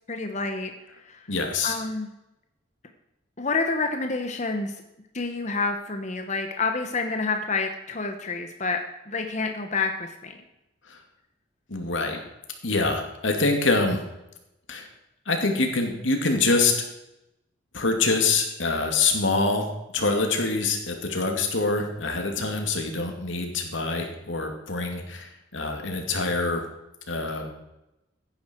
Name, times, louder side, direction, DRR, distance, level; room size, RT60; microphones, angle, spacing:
voice 1, 0.1-0.7 1.0-1.3 1.6-2.1 3.4-4.8 5.1-8.8 9.1-10.4, left 3 dB, 40° left, 5 dB, 1.1 m, -28 dB
voice 2, 1.3-1.8 10.9-11.0 11.7-12.2 12.6-14.0 14.7-14.9 15.3-16.7 17.7-19.7 19.9-26.6 27.1-27.5, left 3 dB, 90° left, 3 dB, 2.6 m, -25 dB
15.0 x 10.5 x 4.6 m, 0.90 s
head